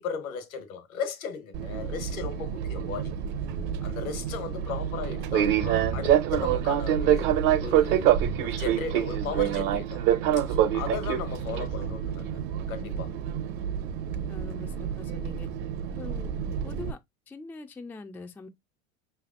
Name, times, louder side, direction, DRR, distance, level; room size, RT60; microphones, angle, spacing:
voice 1, 0.0-3.1 3.8-7.3 7.6-8.1 8.4-10.0 10.5-12.4 12.7-13.1, left 6 dB, 85° left, 1.3 m, -36 dB
Fixed-wing aircraft airplane, 1.5-16.9, right 10 dB, 50° right, 0.9 m, -27 dB
voice 2, 14.3-15.5 16.0-16.3 16.6-17.0 17.3-18.5, left 3 dB, 5° left, 0.3 m, -42 dB
5.4 x 3.4 x 2.4 m
hypercardioid pair, 95°, 41 cm